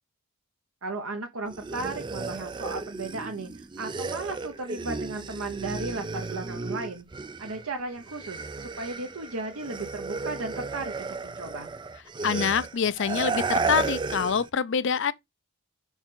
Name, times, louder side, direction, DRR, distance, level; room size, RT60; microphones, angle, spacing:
voice 1, 0.8-7.1 7.4-11.7, right 3 dB, 70° right, 1.0 m, -35 dB
sound 1, 1.5-7.7 8.0-14.5, right 4 dB, 20° right, 0.3 m, -34 dB
voice 2, 12.2-15.1, left 6 dB, 55° left, 0.4 m, -25 dB
5.5 x 4.5 x 3.7 m
head